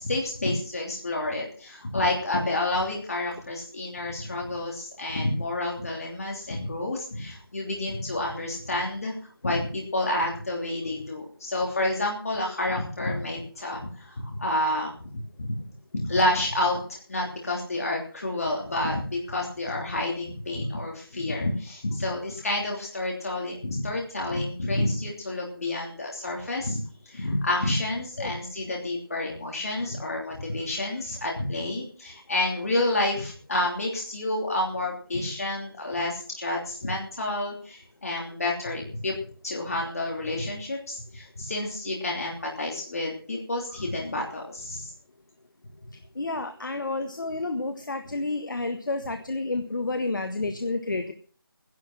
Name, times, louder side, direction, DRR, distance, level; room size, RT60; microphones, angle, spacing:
voice 1, 0.0-9.1 9.4-15.6 15.9-39.2 39.4-44.9, left 1 dB, 40° left, -1 dB, 3.0 m, -29 dB
voice 2, 46.1-51.1, left 2 dB, 55° left, 7 dB, 1.6 m, -30 dB
13.0 x 11.0 x 6.1 m, 0.42 s
figure-of-eight pair, 175°, 12 cm